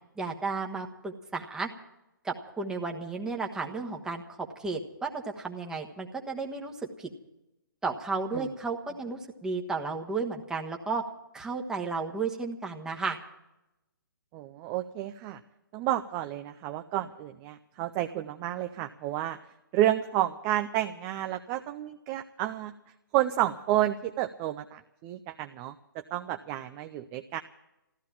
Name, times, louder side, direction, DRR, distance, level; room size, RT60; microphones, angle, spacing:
voice 1, 0.2-1.7 2.2-7.1 7.8-11.0 11.3-13.2, right 4 dB, 5° right, 1 dB, 1.2 m, -33 dB
voice 2, 14.3-15.4 15.7-19.4 19.7-22.7 23.1-27.4, right 13 dB, 20° right, 8 dB, 0.5 m, -30 dB
14.5 x 13.0 x 7.2 m, 0.92 s
figure-of-eight pair, 135°, 12 cm